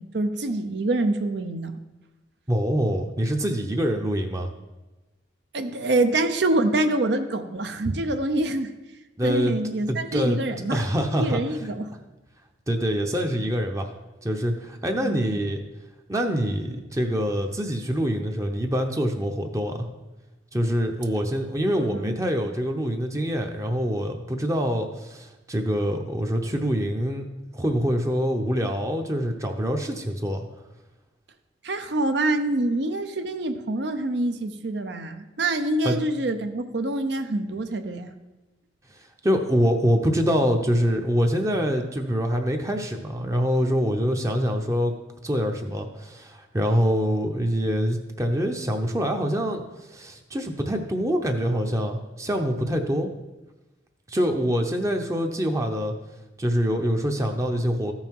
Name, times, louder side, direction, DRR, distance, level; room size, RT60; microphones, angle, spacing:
voice 1, 0.0-1.8 5.5-8.7 9.2-10.8 11.2-11.9 15.0-15.4 21.9-22.2 31.6-38.1, right 2 dB, 65° right, 8 dB, 0.7 m, -26 dB
voice 2, 2.5-4.5 9.2-9.6 9.9-10.4 10.7-11.4 12.7-13.9 14.2-15.6 16.1-19.9 20.5-27.2 27.5-30.4 35.8-36.0 39.2-44.9 45.2-49.6 49.9-53.1 54.1-55.9 56.4-57.9, equal, 15° right, 4 dB, 0.7 m, -25 dB
14.0 x 5.6 x 4.6 m, 1.1 s
head